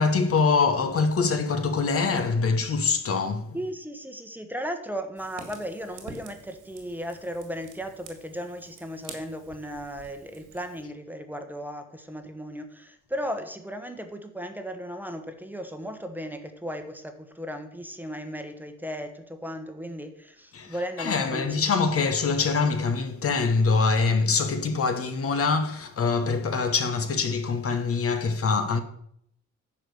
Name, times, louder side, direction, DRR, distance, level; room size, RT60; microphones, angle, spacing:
voice 1, 0.0-3.6 20.5-28.8, left 4 dB, 50° left, 1.1 m, -24 dB
voice 2, 3.5-21.7, equal, 5° right, 1.1 m, -36 dB
Fire, 5.2-10.8, right 4 dB, 85° right, 2.4 m, -47 dB
10.0 x 4.9 x 7.0 m
cardioid pair, 90°, 30 cm